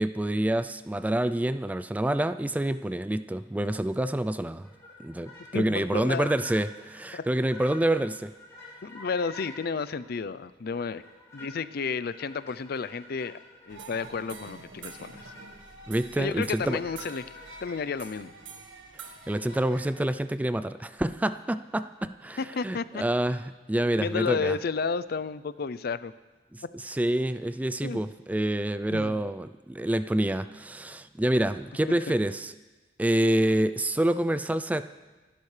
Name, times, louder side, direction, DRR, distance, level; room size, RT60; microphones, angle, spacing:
voice 1, 0.0-4.7 5.0-8.3 15.9-16.8 19.3-24.6 26.5-32.5 33.0-34.8, right 1 dB, 10° right, 11 dB, 0.3 m, -27 dB
sound 1, 4.6-10.1 10.7-14.4 14.8-15.9 16.6-18.6 19.3-19.7, left 2 dB, 15° left, 4.7 m, -49 dB
voice 2, 5.5-6.3 7.1-7.2 8.8-11.0 11.3-13.4 13.7-15.2 16.2-17.2 17.6-18.3 22.4-23.0 24.0-26.1 27.8-28.0 28.9-29.2, left 5 dB, 55° left, 15 dB, 0.5 m, -31 dB
sound 2, 13.7-19.9, right 4 dB, 80° right, 1.6 m, -46 dB
25.5 x 11.5 x 3.3 m, 1.2 s
head